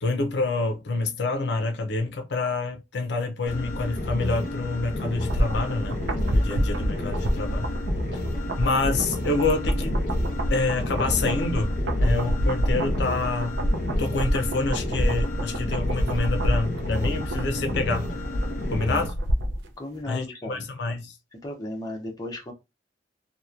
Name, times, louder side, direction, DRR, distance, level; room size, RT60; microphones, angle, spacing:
voice 1, 0.0-6.0 6.3-7.7 8.6-10.0 10.5-13.6 14.0-18.1 18.7-19.1 20.1-21.1, left 3 dB, 65° left, 0.5 m, -27 dB
sound 1, 3.5-19.1, left 1 dB, 45° left, 0.8 m, -31 dB
sound 2, 5.0-19.7 20.0-20.1, equal, 85° right, 0.5 m, -27 dB
voice 2, 19.8-20.7 21.3-22.5, left 1 dB, 20° left, 0.6 m, -35 dB
2.8 x 2.1 x 2.4 m
head